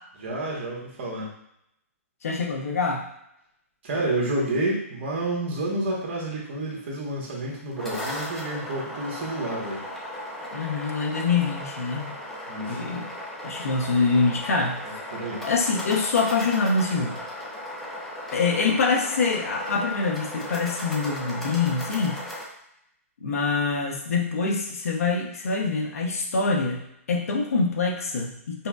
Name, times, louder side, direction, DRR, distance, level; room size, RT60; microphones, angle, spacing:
voice 1, 0.2-1.3 3.8-9.8 12.5-12.8 14.9-15.4, right 2 dB, 45° right, -3 dB, 1.2 m, -29 dB
voice 2, 2.2-3.1 10.5-12.2 12.7-13.1 13.4-14.8 15.4-17.2 18.3-22.2 23.2-28.7, left 4 dB, 75° left, 2 dB, 0.7 m, -25 dB
sound 1, 7.5-22.4, left 1 dB, 5° left, 0.4 m, -36 dB
5.4 x 2.1 x 2.3 m, 0.78 s
hypercardioid pair, 155°, 8 cm